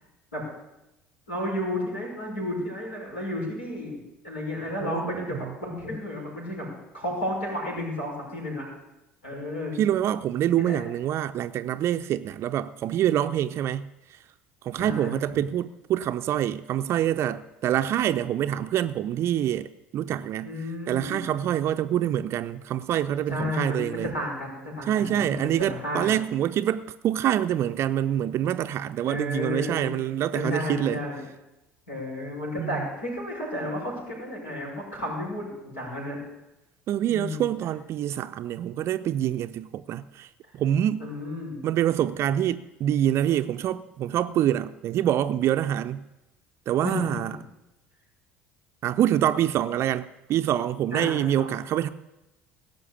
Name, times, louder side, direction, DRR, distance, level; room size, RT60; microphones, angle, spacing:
voice 1, 1.3-6.7 6.9-8.6 9.2-9.8 10.6-10.8 14.7-15.4 20.4-21.3 23.3-26.1 29.1-29.9 30.3-31.2 31.9-36.2 37.1-37.5 41.0-41.6 46.8-47.3 50.9-51.6, left 1 dB, 80° left, 5.8 m, -32 dB
voice 2, 4.8-5.4 9.7-14.2 14.6-20.5 20.9-24.1 24.9-31.0 32.6-32.7 36.9-40.3 40.5-41.1 41.6-46.0 46.7-47.3 48.8-51.9, right 11 dB, 45° right, 0.5 m, -26 dB
17.0 x 6.2 x 8.4 m
figure-of-eight pair, 60°, 6 cm